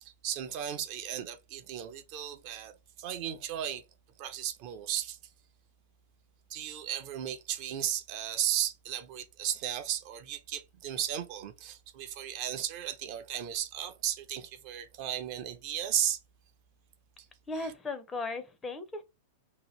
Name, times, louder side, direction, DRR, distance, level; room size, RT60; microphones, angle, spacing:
voice 1, 0.0-3.8 4.2-5.2 6.5-16.2 17.6-17.7, right 10 dB, 40° right, 0.5 m, -35 dB
voice 2, 17.5-19.0, left 3 dB, 15° left, 0.5 m, -36 dB
2.8 x 2.3 x 3.1 m
figure-of-eight pair, 95°, 0 cm